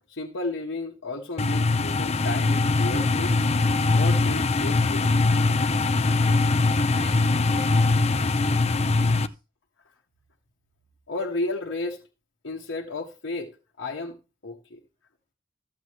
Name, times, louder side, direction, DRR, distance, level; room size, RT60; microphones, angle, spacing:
voice 1, 0.1-3.4 3.9-5.1 11.1-12.0 12.4-13.5 13.8-14.2 14.4-14.8, left 2 dB, 80° left, 1.5 m, -32 dB
sound 1, 1.4-9.3, left 3 dB, 35° left, 0.6 m, -22 dB
voice 2, 6.1-9.4, equal, 25° right, 6.7 m, -47 dB
14.0 x 7.4 x 3.2 m
head